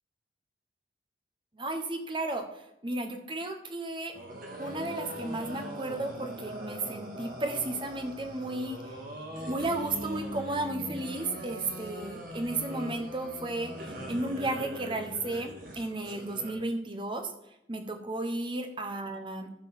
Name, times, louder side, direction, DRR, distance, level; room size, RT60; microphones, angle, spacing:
voice 1, 1.5-2.5 2.8-4.1 4.6-8.9 9.5-17.3 17.7-19.5, right 2 dB, 25° right, 6 dB, 1.1 m, -34 dB
sound 1, 4.1-16.5, right 1 dB, 50° right, 1.9 m, -41 dB
14.0 x 4.8 x 5.9 m, 0.84 s
head